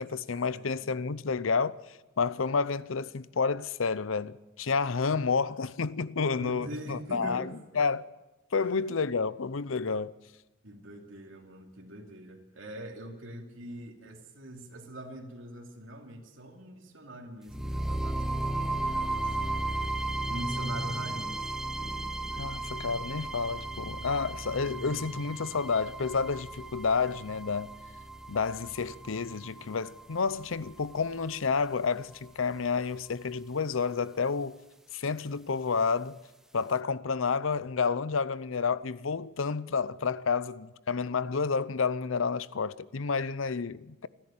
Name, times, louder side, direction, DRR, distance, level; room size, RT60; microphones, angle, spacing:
voice 1, 0.0-7.5 7.8-8.0 8.5-10.1 22.4-27.7 28.3-34.6 34.9-36.2 36.5-44.1, left 5 dB, 85° left, 0.7 m, -30 dB
voice 2, 0.5-0.9 6.4-7.5 8.6-8.9 10.6-19.6 20.2-21.5 21.8-22.6 24.0-24.1 24.6-25.1, right 1 dB, 80° right, 2.7 m, -44 dB
sound 1, 17.5-31.5, right 2 dB, 5° right, 0.8 m, -35 dB
28.5 x 10.5 x 8.8 m
head